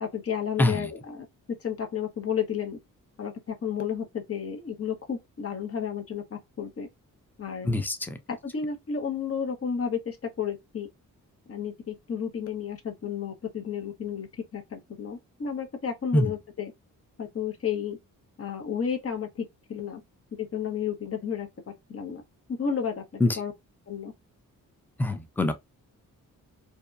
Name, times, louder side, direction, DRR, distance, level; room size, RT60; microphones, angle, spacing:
voice 1, 0.0-2.8 3.2-6.9 7.4-7.8 8.4-10.9 11.5-14.3 14.5-16.7 17.2-18.0 18.4-20.0 20.4-22.2 22.5-23.5 23.9-24.1, left 7 dB, 40° left, 0.9 m, -32 dB
voice 2, 0.6-0.9 7.6-8.2 16.1-16.3 23.2-23.4 25.0-25.5, left 1 dB, 5° left, 0.5 m, -24 dB
2.8 x 2.2 x 2.4 m
cardioid pair, 70°, 34 cm